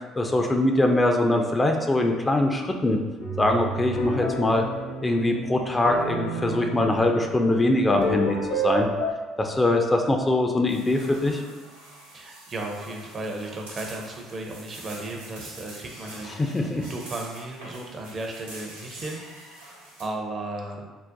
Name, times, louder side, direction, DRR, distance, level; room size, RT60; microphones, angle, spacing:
voice 1, 0.1-3.0 3.4-4.6 5.0-8.9 9.4-11.4 16.4-16.9, left 1 dB, 20° left, 3 dB, 0.3 m, -22 dB
sound 1, 3.2-9.1, right 1 dB, 65° left, 0.6 m, -30 dB
sound 2, 10.7-20.0, right 1 dB, 90° right, 0.9 m, -45 dB
voice 2, 12.1-16.6 16.9-20.9, right 2 dB, 40° right, 1 dB, 0.5 m, -35 dB
3.8 x 2.1 x 2.5 m, 1.2 s
hypercardioid pair, 55°, 0 cm